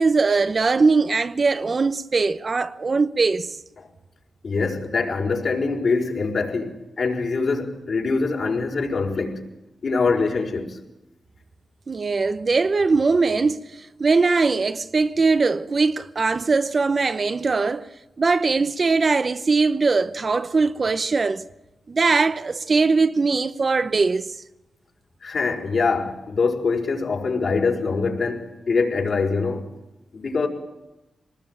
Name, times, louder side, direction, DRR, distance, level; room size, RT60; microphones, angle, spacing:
voice 1, 0.0-3.6 11.9-13.6 14.0-17.9 18.2-21.4 21.9-24.3, right 4 dB, 40° right, 0.9 m, -21 dB
voice 2, 4.4-9.4 9.8-10.8 25.2-29.7 30.1-30.5, left 4 dB, 55° left, 5.4 m, -24 dB
25.5 x 20.0 x 9.1 m
wide cardioid pair, 120°, 0 cm